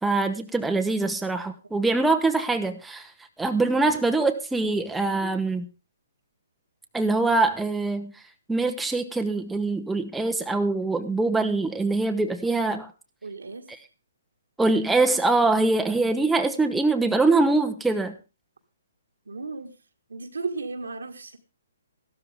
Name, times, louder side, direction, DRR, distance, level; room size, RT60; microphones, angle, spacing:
voice 1, 0.0-3.1 3.4-5.7 6.9-8.1 8.5-12.9 14.6-18.1, right 3 dB, 5° right, 5 dB, 0.9 m, -23 dB
voice 2, 13.2-13.7 19.3-19.8 20.1-21.4, right 3 dB, 80° right, 6 dB, 1.9 m, -34 dB
14.5 x 12.5 x 3.6 m, 0.31 s
hypercardioid pair, 135°, 0 cm